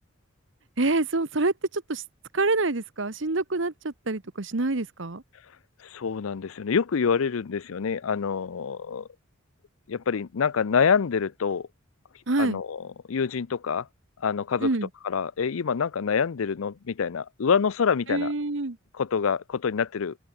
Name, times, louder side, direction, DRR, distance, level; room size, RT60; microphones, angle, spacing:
voice 1, 0.8-2.0 2.3-5.2 12.3-12.6 14.6-14.9 18.1-18.8, right 2 dB, 60° right, 1.2 m, -26 dB
voice 2, 5.8-9.1 9.9-11.7 12.4-13.9 14.2-14.7 15.0-18.3 18.9-20.2, left 6 dB, 80° left, 0.5 m, -26 dB
open air
head